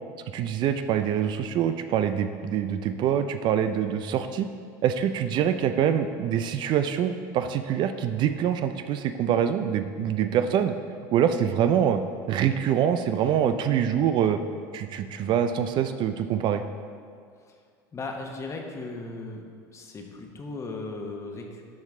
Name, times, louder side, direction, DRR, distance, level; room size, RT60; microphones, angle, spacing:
voice 1, 0.3-4.5 4.8-10.7 11.1-12.0 12.3-14.4 14.7-16.6, right 9 dB, 50° right, 9 dB, 0.4 m, -25 dB
voice 2, 17.9-19.4 19.7-21.6, left 3 dB, 30° left, 2 dB, 1.1 m, -37 dB
12.0 x 4.5 x 3.6 m, 2.2 s
supercardioid pair, 95°, 10 cm